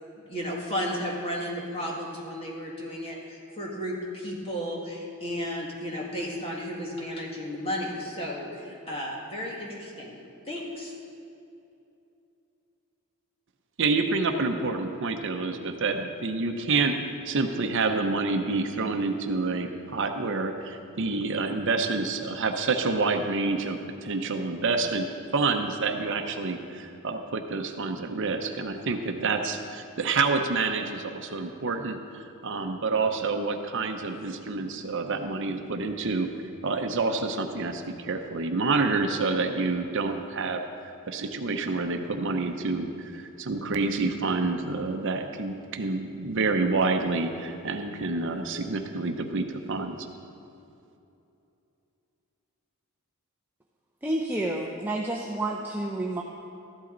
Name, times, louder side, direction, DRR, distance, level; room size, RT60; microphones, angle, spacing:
voice 1, 0.3-10.2 10.4-10.9, equal, 25° left, -2 dB, 2.0 m, -33 dB
voice 2, 13.8-25.1 25.3-32.0 32.4-36.3 36.6-40.6 41.1-50.0, right 3 dB, 55° right, 5 dB, 0.8 m, -28 dB
voice 3, 54.0-56.2, right 1 dB, 10° right, -1 dB, 0.6 m, -29 dB
14.0 x 12.0 x 3.9 m, 2.7 s
head